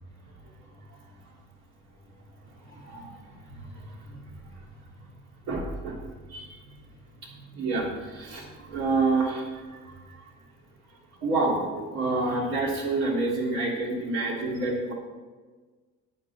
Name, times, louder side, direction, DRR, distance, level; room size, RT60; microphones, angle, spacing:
voice 1, 5.5-6.0 6.3-6.5 7.5-8.4 8.7-9.4 11.2-14.9, right 3 dB, 55° right, -2 dB, 3.1 m, -27 dB
14.0 x 9.5 x 3.6 m, 1.4 s
cardioid pair, 165°, 32 cm